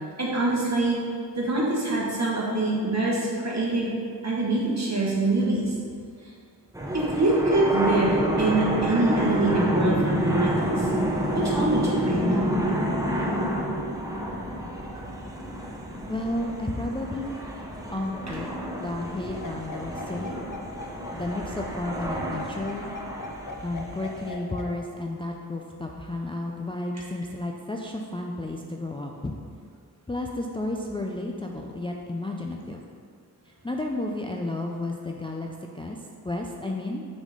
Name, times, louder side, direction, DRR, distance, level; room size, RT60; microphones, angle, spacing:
voice 1, 0.2-1.0 1.3-3.9 4.2-5.7 6.9-10.9 11.3-12.2, right 2 dB, 45° right, -5 dB, 1.7 m, -24 dB
sound 1, 6.7-24.3, equal, 10° right, 0.9 m, -29 dB
voice 2, 16.1-17.4 17.9-18.5 18.8-20.4 21.1-22.9 23.6-29.3 30.1-32.8 33.5-35.5 35.7-36.0 36.2-37.1, left 2 dB, 15° left, 0 dB, 0.4 m, -32 dB
sound 2, 19.4-24.6, left 3 dB, 55° left, 0.8 m, -40 dB
6.1 x 4.2 x 5.2 m, 2.1 s
wide cardioid pair, 65°, 39 cm